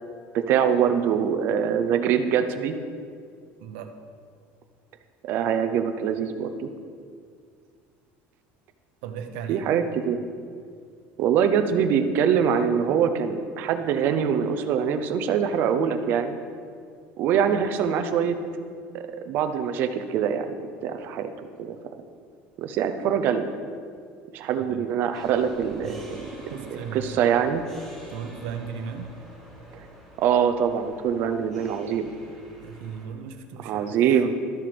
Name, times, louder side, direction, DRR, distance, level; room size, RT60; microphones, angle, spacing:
voice 1, 0.3-2.7 5.2-6.7 9.5-10.2 11.2-16.4 17.2-18.4 18.9-20.6 20.8-21.3 21.6-21.8 22.6-23.4 24.3-26.3 26.7-27.6 29.7-29.8 30.2-32.2 33.6-34.3, right 8 dB, 40° right, 8 dB, 0.6 m, -24 dB
voice 2, 3.6-3.9 9.0-9.7 24.7-24.8 25.8-26.1 26.5-27.2 28.1-29.1 32.6-34.0, right 7 dB, 80° right, 7 dB, 0.8 m, -36 dB
sound 1, 25.1-33.1, right 1 dB, 10° left, 1.8 m, -47 dB
13.0 x 7.1 x 3.4 m, 2.2 s
cardioid pair, 180°, 5 cm